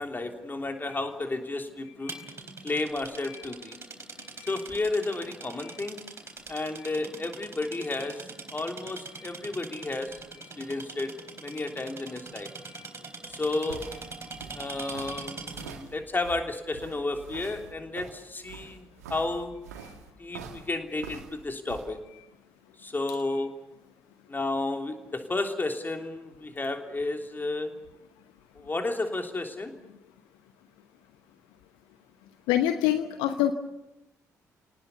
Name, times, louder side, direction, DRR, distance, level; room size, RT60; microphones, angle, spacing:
voice 1, 0.0-2.2 2.6-3.7 4.5-6.0 6.5-8.2 8.5-10.1 10.6-11.1 11.4-12.5 13.3-13.8 14.5-19.6 20.2-20.4 20.7-22.0 22.8-23.5 24.3-27.7 28.6-29.7, left 2 dB, 25° left, 4 dB, 3.2 m, -32 dB
sound 1, 2.1-15.9, right 3 dB, 30° right, 3.9 m, -43 dB
sound 2, 13.2-21.9, right 6 dB, 80° right, 1.9 m, -45 dB
voice 2, 32.5-33.5, left 12 dB, 65° left, 9 dB, 1.0 m, -28 dB
29.0 x 19.0 x 7.0 m, 0.93 s
figure-of-eight pair, 45°, 9 cm